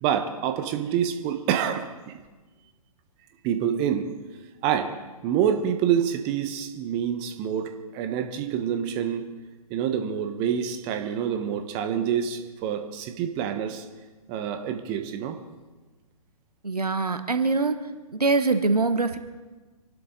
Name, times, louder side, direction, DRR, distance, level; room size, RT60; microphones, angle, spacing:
voice 1, 0.0-2.1 3.4-4.1 4.6-4.9 5.2-9.2 9.7-13.8 14.3-15.4, right 8 dB, 30° right, 7 dB, 1.3 m, -27 dB
voice 2, 16.6-17.8 18.1-19.2, right 3 dB, 90° right, 9 dB, 1.2 m, -23 dB
27.0 x 12.0 x 3.9 m, 1.3 s
figure-of-eight pair, 125°, 19 cm